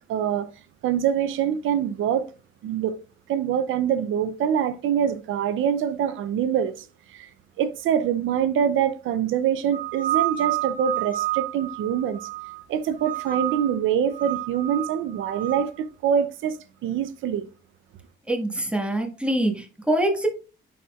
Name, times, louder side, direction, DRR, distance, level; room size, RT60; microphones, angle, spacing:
voice 1, 0.1-0.5 0.8-2.2 2.6-3.0 3.3-7.3 7.6-12.3 12.7-16.6 16.8-17.5, right 8 dB, 80° right, 0.6 m, -25 dB
sound 1, 9.7-12.6 13.0-13.8 14.1-15.7, right 15 dB, 40° right, 1.2 m, -29 dB
voice 2, 18.3-20.3, right 1 dB, 5° right, 1.6 m, -24 dB
10.0 x 4.2 x 2.4 m
cardioid pair, 90°, 20 cm